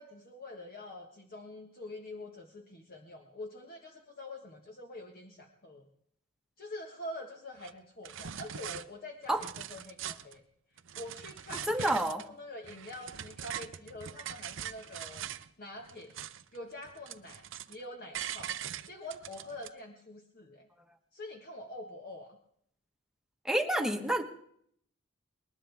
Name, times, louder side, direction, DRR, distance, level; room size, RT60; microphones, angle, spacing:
voice 1, 0.0-5.9 6.6-10.4 10.9-15.3 15.6-16.2 16.5-18.6 18.9-20.7 21.1-22.4, left 1 dB, 45° left, 2 dB, 1.5 m, -45 dB
sound 1, 7.6-7.7 8.0-8.8 9.2-10.4 10.8-12.3 12.6-15.5 15.8-16.6 16.8-17.8 18.1-19.7, right 9 dB, 65° right, 0.6 m, -42 dB
voice 2, 11.5-12.2 23.4-24.2, right 1 dB, ahead, 4 dB, 1.2 m, -29 dB
20.5 x 20.0 x 3.5 m, 0.68 s
head